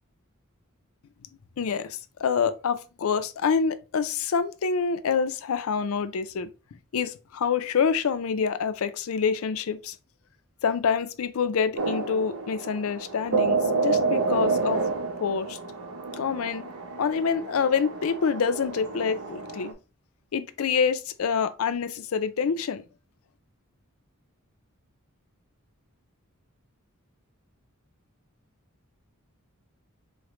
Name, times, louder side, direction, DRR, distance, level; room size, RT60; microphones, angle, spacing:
voice 1, 1.6-10.0 10.6-14.8 15.2-15.6 16.2-16.7 17.0-19.7 20.3-22.8, left 6 dB, 75° left, 0.4 m, -27 dB
sound 1, 11.8-19.7, right 4 dB, 85° right, 0.8 m, -29 dB
4.8 x 2.1 x 3.0 m
head